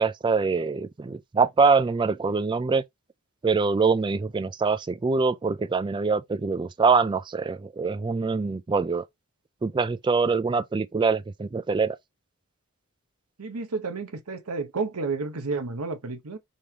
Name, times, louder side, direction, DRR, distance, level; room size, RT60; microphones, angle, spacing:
voice 1, 0.0-2.8 3.4-9.0 9.6-12.0, right 4 dB, 20° right, 0.3 m, -24 dB
voice 2, 13.4-16.4, right 4 dB, 85° right, 0.9 m, -31 dB
5.3 x 3.3 x 2.8 m
head